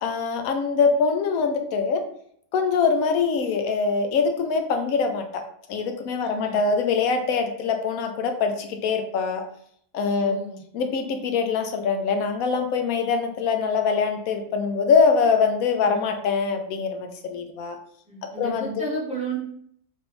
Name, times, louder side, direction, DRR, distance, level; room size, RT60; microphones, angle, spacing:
voice 1, 0.0-2.0 2.5-5.4 5.7-9.4 9.9-10.4 10.7-17.8 18.4-18.7, left 5 dB, 85° left, 6 dB, 1.1 m, -23 dB
voice 2, 6.2-6.6 10.2-10.6 15.8-16.1 18.0-19.4, right 2 dB, 5° right, -7 dB, 1.4 m, -33 dB
4.3 x 2.7 x 3.1 m, 0.66 s
omnidirectional pair, 1.5 m